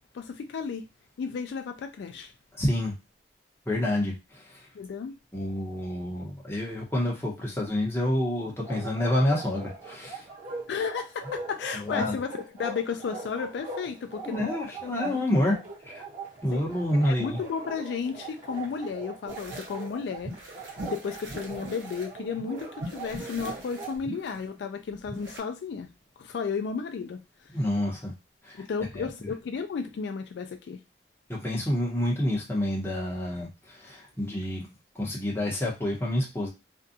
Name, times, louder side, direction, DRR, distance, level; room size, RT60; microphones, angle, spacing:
voice 1, 0.1-0.8 1.2-2.3 4.7-5.2 10.7-12.3 12.6-14.5 15.0-15.3 16.5-16.7 17.0-20.5 20.8-25.9 26.2-27.2 28.6-30.8, left 5 dB, 70° left, 0.3 m, -33 dB
voice 2, 2.6-2.9 3.7-4.1 5.3-10.2 11.8-12.2 14.3-15.6 15.9-16.0 16.4-17.4 27.5-28.1 29.0-29.1 31.3-33.5 33.8-34.7 35.0-36.5, left 1 dB, 15° left, 0.9 m, -28 dB
Bark, 8.6-24.0, right 3 dB, 45° right, 1.2 m, -41 dB
sound 1, 19.3-19.9 20.2-22.1 22.3-25.4, right 1 dB, 80° right, 0.8 m, -41 dB
2.6 x 2.3 x 2.6 m
head